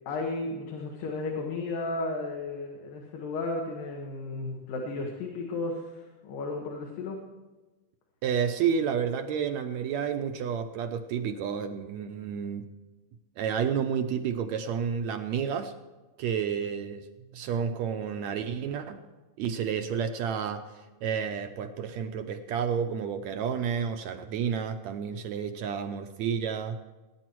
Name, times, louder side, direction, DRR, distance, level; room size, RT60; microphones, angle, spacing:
voice 1, 0.1-7.2, left 3 dB, 85° left, 0 dB, 3.4 m, -34 dB
voice 2, 8.2-12.7 13.4-15.7 16.2-17.0 17.3-19.0 19.4-20.6 21.0-26.8, right 7 dB, 75° right, 7 dB, 1.8 m, -30 dB
20.0 x 9.7 x 4.6 m, 1.2 s
omnidirectional pair, 3.8 m